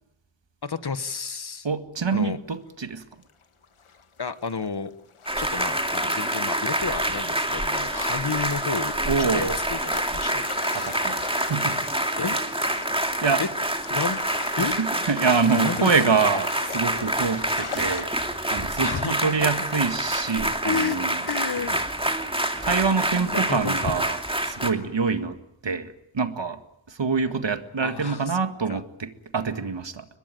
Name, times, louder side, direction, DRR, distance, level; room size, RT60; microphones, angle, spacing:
voice 1, 0.6-1.7 2.1-2.4 4.2-4.9 5.4-8.9 9.2-10.9 12.2-12.4 13.4-13.5 13.9-14.2 14.6-14.8 15.6-16.1 18.8-19.5 20.6-21.0 21.3-21.8 23.3-23.9 27.8-28.4 28.7-28.8, left 5 dB, 50° left, 13 dB, 1.3 m, -31 dB
voice 2, 1.6-3.0 9.0-9.6 10.7-11.8 13.2-13.4 14.6-18.1 18.5-21.2 22.6-25.4 25.6-26.6 26.9-30.1, right 5 dB, 60° right, 9 dB, 1.9 m, -25 dB
sound 1, 2.6-2.7 3.2-18.0, left 6 dB, 85° left, 1.6 m, -41 dB
sound 2, 5.3-24.7, right 1 dB, 10° right, 2.5 m, -27 dB
22.5 x 21.0 x 9.2 m, 0.84 s
wide cardioid pair, 60°, 48 cm